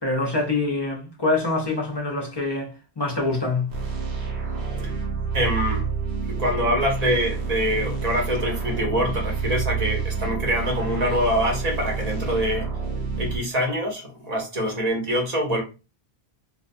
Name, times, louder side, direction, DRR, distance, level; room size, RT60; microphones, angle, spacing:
voice 1, 0.0-3.7, left 3 dB, 35° left, 0.5 m, -25 dB
sound 1, 3.7-13.4, right 5 dB, 75° right, 1.0 m, -28 dB
voice 2, 5.3-5.9 6.2-12.7 13.2-15.6, equal, 40° right, 0.7 m, -25 dB
2.3 x 2.2 x 2.5 m
omnidirectional pair, 1.1 m